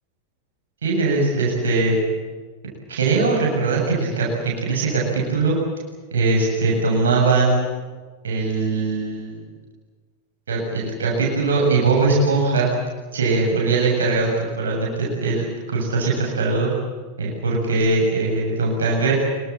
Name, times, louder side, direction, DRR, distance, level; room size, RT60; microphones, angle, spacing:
voice 1, 0.8-2.0 2.9-4.3 4.6-5.6 6.1-7.7 8.2-9.4 10.5-12.7 13.1-16.7 17.2-19.1, right 3 dB, 65° right, -2 dB, 7.7 m, -21 dB
26.5 x 25.0 x 7.4 m, 1.4 s
figure-of-eight pair, 90°, 0 cm